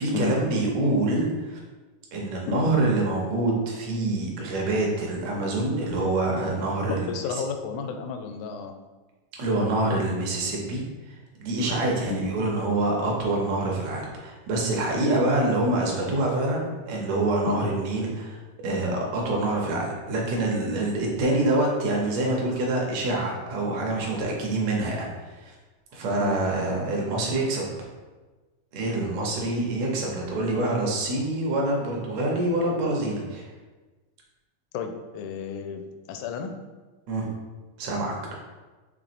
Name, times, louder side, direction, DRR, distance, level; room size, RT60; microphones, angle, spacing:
voice 1, 0.0-1.6 2.1-7.1 9.3-25.1 25.3-25.5 25.9-27.7 28.7-33.5 37.1-37.3 37.8-38.1, right 2 dB, 75° right, -1 dB, 1.7 m, -26 dB
voice 2, 6.9-8.7 12.1-12.3 17.5-17.7 26.2-26.4 34.7-36.5, left 5 dB, 80° left, 5 dB, 1.8 m, -31 dB
6.0 x 3.4 x 2.5 m, 1.3 s
omnidirectional pair, 3.8 m